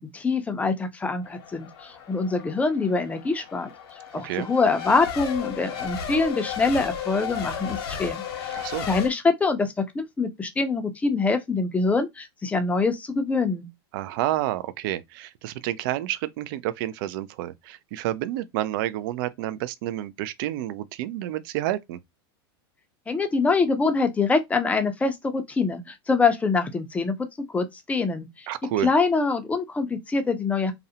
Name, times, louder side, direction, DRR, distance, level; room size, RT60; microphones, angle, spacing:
voice 1, 0.0-3.7 4.1-13.7 23.1-28.5 28.8-30.7, left 4 dB, 10° left, 0.4 m, -25 dB
Race car auto racing / Accelerating revving vroom / Mechanisms, 1.2-9.1, left 8 dB, 70° left, 0.8 m, -34 dB
voice 2, 8.5-8.9 13.9-22.0 28.5-28.9, right 14 dB, 60° right, 0.4 m, -29 dB
2.4 x 2.0 x 2.7 m
supercardioid pair, 125°, 13 cm